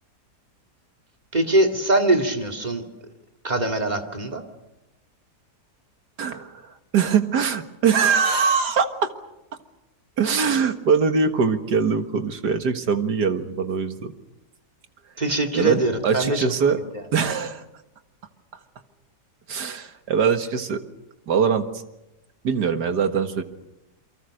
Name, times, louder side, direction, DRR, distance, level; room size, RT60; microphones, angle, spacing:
voice 1, 1.3-2.8 3.4-4.4 15.2-16.8, right 2 dB, 25° right, 4 dB, 2.4 m, -23 dB
voice 2, 6.2-9.1 10.2-14.1 15.5-16.8 17.1-17.6 19.5-20.8 21.3-21.7 22.4-23.4, right 6 dB, 75° right, 8 dB, 2.2 m, -22 dB
28.5 x 24.0 x 6.5 m, 0.93 s
omnidirectional pair, 1.8 m